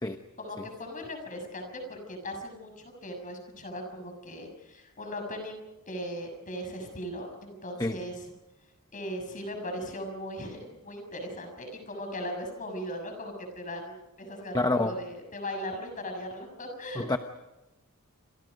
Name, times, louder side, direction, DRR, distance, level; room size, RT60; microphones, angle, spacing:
voice 1, 0.4-8.3 8.9-17.1, equal, 40° left, 4 dB, 6.6 m, -38 dB
voice 2, 14.5-15.0 16.9-17.2, left 2 dB, 20° left, 7 dB, 0.9 m, -27 dB
29.0 x 26.5 x 5.2 m, 0.99 s
head